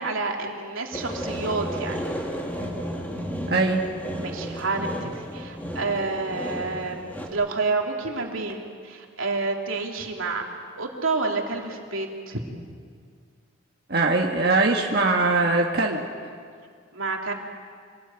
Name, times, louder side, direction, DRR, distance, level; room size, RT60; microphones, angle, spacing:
voice 1, 0.0-2.0 4.2-10.4 10.8-12.4 16.9-17.3, right 3 dB, 85° right, 1 dB, 3.0 m, -29 dB
sound 1, 0.9-7.3, equal, 10° left, 2.7 m, -33 dB
voice 2, 3.5-3.8 13.9-16.0, right 3 dB, 50° right, 0 dB, 1.6 m, -21 dB
27.0 x 19.0 x 9.0 m, 2.1 s
head